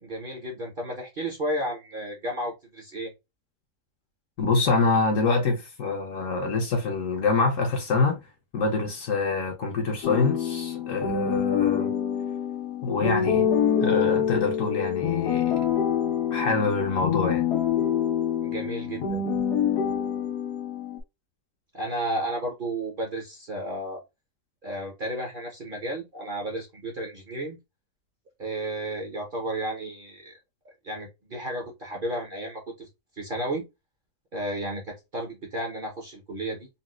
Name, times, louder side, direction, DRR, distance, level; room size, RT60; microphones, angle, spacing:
voice 1, 0.0-3.1 18.4-19.2 21.7-24.0 24.6-27.6 28.4-30.3 30.8-32.9 33.2-33.6 34.3-36.7, right 1 dB, 40° right, 0.8 m, -33 dB
voice 2, 4.4-8.2 8.5-11.9 12.8-13.5 13.8-15.6 16.3-17.4, left 4 dB, 60° left, 1.0 m, -25 dB
sound 1, 10.0-21.0, left 8 dB, 90° left, 1.4 m, -26 dB
4.0 x 2.2 x 2.3 m
omnidirectional pair, 1.7 m